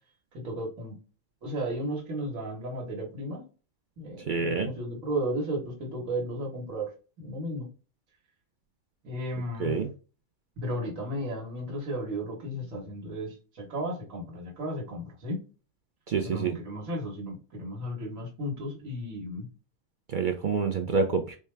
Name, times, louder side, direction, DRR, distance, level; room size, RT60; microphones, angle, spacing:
voice 1, 0.3-1.0 1.4-3.4 4.0-6.9 7.2-7.7 9.0-9.8 10.6-15.4 16.2-19.5, equal, 85° right, -2 dB, 1.6 m, -34 dB
voice 2, 4.3-4.7 9.6-9.9 16.1-16.5 20.1-21.4, right 5 dB, 60° right, 4 dB, 0.5 m, -27 dB
4.4 x 2.3 x 3.1 m, 0.35 s
omnidirectional pair, 1.3 m